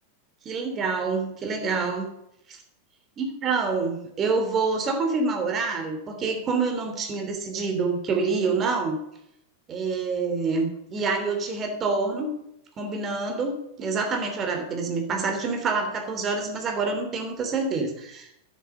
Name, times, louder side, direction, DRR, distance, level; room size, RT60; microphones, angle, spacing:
voice 1, 0.4-2.1 2.5-2.6 3.2-9.0 9.7-12.3 12.8-18.3, right 4 dB, 25° right, 4 dB, 3.2 m, -27 dB
10.5 x 9.6 x 6.8 m, 0.81 s
figure-of-eight pair, 90°, 0 cm